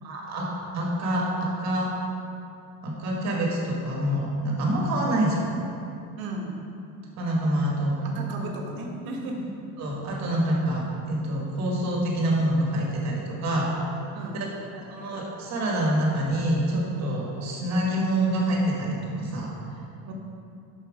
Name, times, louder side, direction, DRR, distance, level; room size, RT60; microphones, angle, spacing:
voice 1, 0.0-1.9 2.8-5.4 7.2-8.0 9.8-13.7 14.3-14.5 14.8-19.5, right 1 dB, 45° right, -2 dB, 1.8 m, -26 dB
voice 2, 6.2-6.6 8.0-9.4 14.1-14.7 20.0-20.1, right 2 dB, 75° right, 0 dB, 1.4 m, -35 dB
7.7 x 6.3 x 5.0 m, 2.6 s
cardioid pair, 170°, 37 cm